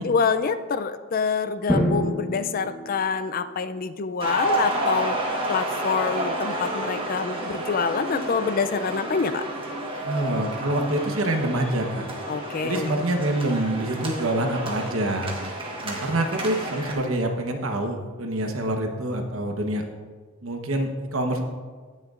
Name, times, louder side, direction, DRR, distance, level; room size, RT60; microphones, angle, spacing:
voice 1, 0.0-5.2 5.5-9.4 12.3-12.9, left 5 dB, 40° left, 12 dB, 0.4 m, -26 dB
Drum, 1.7-3.6, equal, 5° right, 1.2 m, -27 dB
sound 1, 4.2-16.9, right 1 dB, 25° right, 1.2 m, -31 dB
voice 2, 10.0-12.0 12.6-15.4 15.8-19.8 20.4-21.4, right 1 dB, 75° right, 4 dB, 1.1 m, -26 dB
17.5 x 6.5 x 2.5 m, 1.5 s
head